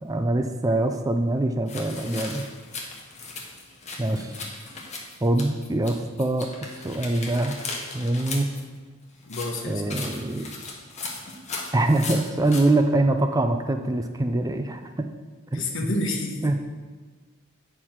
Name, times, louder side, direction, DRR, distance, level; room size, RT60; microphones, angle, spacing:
voice 1, 0.0-2.5 4.0-4.4 5.2-7.5 7.9-8.5 9.6-10.5 11.7-15.1 15.5-15.6 16.4-16.6, right 2 dB, 15° right, 6 dB, 0.4 m, -24 dB
sound 1, 1.7-5.9 6.2-8.6 9.2-12.6, left 3 dB, 35° left, 1.2 m, -37 dB
voice 2, 4.1-4.5 9.3-9.9 15.5-16.5, left 2 dB, 65° left, 2 dB, 1.1 m, -30 dB
8.3 x 4.6 x 5.8 m, 1.4 s
head